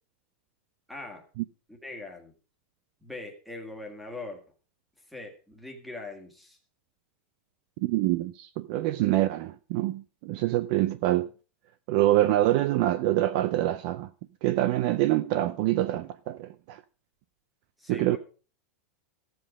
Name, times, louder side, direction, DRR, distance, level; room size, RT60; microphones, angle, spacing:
voice 1, 0.9-1.2 1.8-2.3 3.0-4.4 5.1-6.6 17.8-18.2, left 2 dB, ahead, 1.7 m, -41 dB
voice 2, 7.8-11.3 11.9-14.1 14.4-16.8 17.9-18.2, right 15 dB, 35° right, 0.4 m, -25 dB
14.5 x 7.7 x 4.9 m
supercardioid pair, 180°, 7 cm